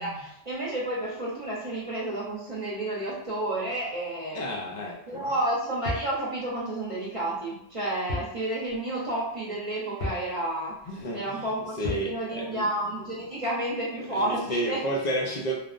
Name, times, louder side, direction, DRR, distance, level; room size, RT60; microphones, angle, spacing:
voice 1, 0.0-4.4 5.1-10.7 11.1-14.8, right 1 dB, 35° right, -7 dB, 0.8 m, -31 dB
voice 2, 4.3-5.3 10.9-11.5 11.8-12.7 14.1-15.6, right 1 dB, 50° left, 0 dB, 0.5 m, -31 dB
sound 1, 5.9-6.2 8.1-8.4 8.7-8.8 10.0-10.3 11.8-12.1, left 2 dB, 70° left, 1.0 m, -33 dB
3.2 x 2.0 x 2.4 m, 0.79 s
omnidirectional pair, 1.1 m